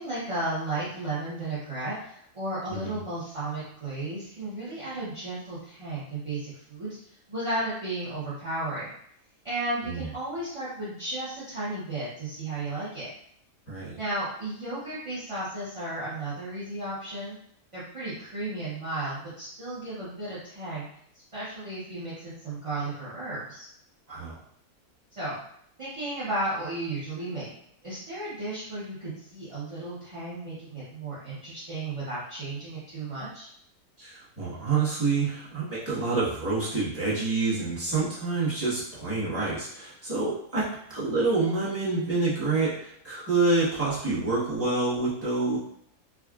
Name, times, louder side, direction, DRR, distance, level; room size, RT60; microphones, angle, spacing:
voice 1, 0.0-8.9 9.4-13.1 14.0-17.4 17.7-20.9 21.3-23.7 25.2-25.4 25.8-27.5 27.8-33.5, right 2 dB, 35° right, -10 dB, 0.5 m, -34 dB
voice 2, 13.7-14.0 24.1-24.4 34.0-45.6, right 3 dB, 10° right, -10 dB, 1.0 m, -27 dB
3.6 x 2.4 x 2.3 m, 0.70 s
omnidirectional pair, 1.5 m